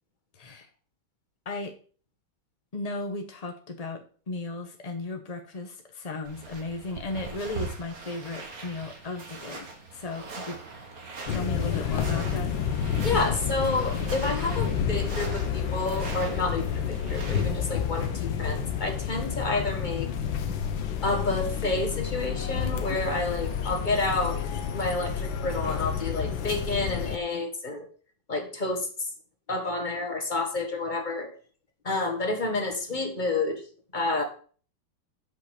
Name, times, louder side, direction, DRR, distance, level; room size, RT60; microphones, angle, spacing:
voice 1, 0.3-0.7 1.4-1.7 2.7-10.6 11.3-12.5, left 3 dB, 40° left, 4 dB, 0.5 m, -35 dB
sound 1, 6.2-17.7, right 4 dB, 50° right, 1.9 m, -41 dB
sound 2, 11.3-27.2, left 8 dB, 75° left, 1.7 m, -30 dB
voice 2, 13.0-20.1 21.0-24.4 24.7-27.9 28.3-28.9 29.5-31.3 31.8-33.6 33.9-34.2, left 2 dB, 25° left, 4 dB, 1.6 m, -29 dB
7.9 x 5.4 x 6.5 m, 0.42 s
omnidirectional pair, 2.1 m